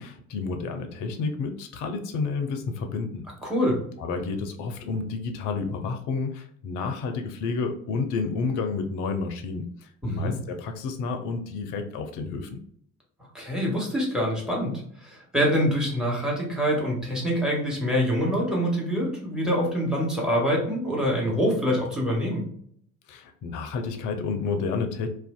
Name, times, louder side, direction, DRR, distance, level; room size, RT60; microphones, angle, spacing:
voice 1, 0.0-3.2 4.0-12.6 23.1-25.1, left 4 dB, 50° left, 6 dB, 0.6 m, -30 dB
voice 2, 3.4-3.8 10.0-10.3 13.3-14.7 15.0-22.4, equal, ahead, -3 dB, 1.2 m, -25 dB
2.5 x 2.2 x 2.3 m, 0.64 s
figure-of-eight pair, 60°, 39 cm